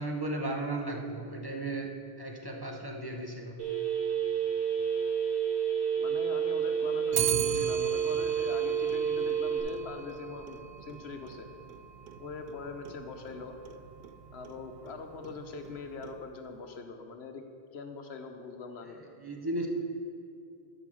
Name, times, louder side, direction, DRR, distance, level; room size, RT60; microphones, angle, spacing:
voice 1, 0.0-3.6 19.2-19.7, right 2 dB, 25° right, 1 dB, 0.9 m, -35 dB
Telephone, 3.6-9.6, right 8 dB, 85° right, 2.2 m, -29 dB
voice 2, 6.0-11.5 12.2-13.6 14.3-17.4 17.7-19.0, left 4 dB, 80° left, 5 dB, 1.1 m, -42 dB
Clock, 7.1-16.5, right 10 dB, 70° right, 0.8 m, -39 dB
12.5 x 5.1 x 6.2 m, 2.5 s
omnidirectional pair, 1.1 m